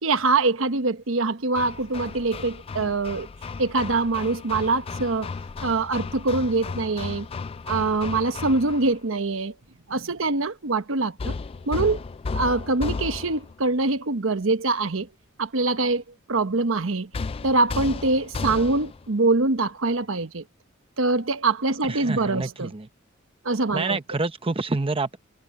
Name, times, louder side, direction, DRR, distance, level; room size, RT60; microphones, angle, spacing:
voice 1, 0.0-3.3 3.6-5.3 5.6-7.3 7.7-9.5 9.9-11.3 11.7-12.0 12.3-15.1 15.4-16.0 16.3-17.1 17.4-20.4 21.0-22.7 23.4-24.0, right 3 dB, 75° right, 1.1 m, -24 dB
Hammer, 1.5-9.0 11.2-13.6 17.1-19.1, left 4 dB, 30° left, 0.3 m, -34 dB
voice 2, 21.9-22.9 23.7-25.2, right 3 dB, 25° right, 0.8 m, -27 dB
head